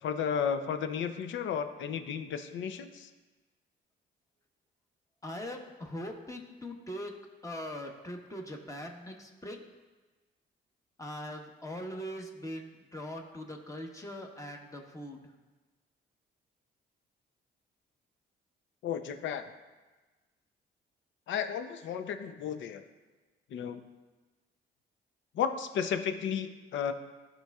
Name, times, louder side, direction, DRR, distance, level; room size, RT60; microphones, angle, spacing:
voice 1, 0.0-3.1 18.8-19.4 21.3-22.8 23.5-23.8 25.3-26.9, left 7 dB, 75° left, 9 dB, 0.6 m, -33 dB
voice 2, 5.2-7.2 7.4-9.6 11.0-15.3, equal, 15° left, 2 dB, 1.1 m, -41 dB
12.5 x 4.5 x 2.4 m, 1.2 s
cardioid pair, 90°, 20 cm